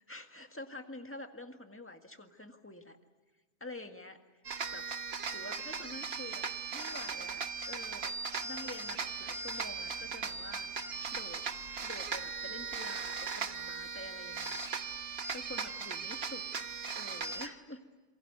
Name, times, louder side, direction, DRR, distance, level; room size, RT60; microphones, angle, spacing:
voice 1, 0.1-3.0 3.6-4.2 4.5-4.8 5.3-6.4 6.7-8.1 8.4-10.7 11.1-11.4 11.8-14.6 15.0-16.6 17.0-17.8, left 2 dB, 10° left, 5 dB, 1.7 m, -47 dB
sound 1, 4.4-17.5, right 5 dB, 45° right, 1.3 m, -38 dB
sound 2, 5.3-6.6 6.9-7.4 7.8-8.2 8.7-8.9 9.5-10.0, left 3 dB, 85° left, 2.4 m, -60 dB
27.5 x 23.5 x 8.0 m, 1.3 s
omnidirectional pair, 1.5 m